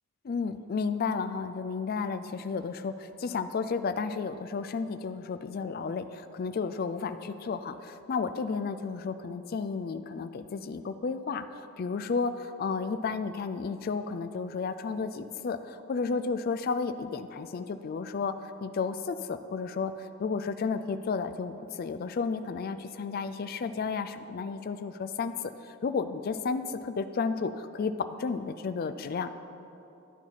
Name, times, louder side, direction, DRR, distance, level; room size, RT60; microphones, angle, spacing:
voice 1, 0.2-25.3 25.6-27.9 28.2-29.3, left 5 dB, 45° left, 10 dB, 0.3 m, -32 dB
11.5 x 4.5 x 5.7 m, 2.8 s
head